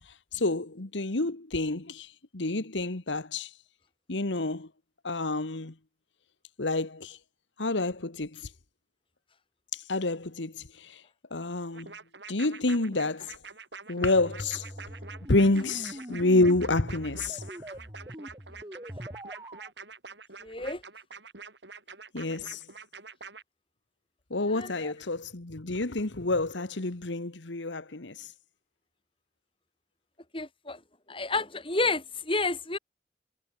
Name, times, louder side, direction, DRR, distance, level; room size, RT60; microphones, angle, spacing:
voice 1, 0.1-3.5 4.1-4.7 5.0-5.7 6.6-7.2 7.6-8.5 9.7-11.0 11.3-11.9 12.3-13.4 13.9-14.7 15.3-17.4 22.1-22.6 24.3-28.3, left 2 dB, 85° left, 1.6 m, -28 dB
sound 1, 11.7-23.4, right 5 dB, 75° right, 7.0 m, -46 dB
sound 2, 14.1-19.7, equal, 20° right, 5.0 m, -42 dB
voice 2, 20.4-20.8 24.5-24.9 30.3-30.8 31.1-32.8, left 3 dB, 30° left, 6.4 m, -30 dB
head